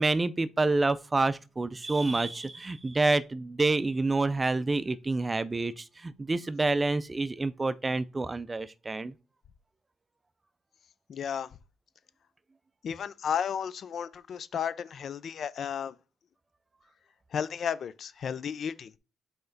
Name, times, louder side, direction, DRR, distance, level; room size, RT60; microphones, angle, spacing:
voice 1, 0.0-9.1, right 3 dB, 20° right, 0.4 m, -28 dB
voice 2, 11.1-11.5 12.8-15.9 17.3-18.9, left 8 dB, 60° left, 0.5 m, -33 dB
5.5 x 4.4 x 3.9 m
cardioid pair, 90°, 0 cm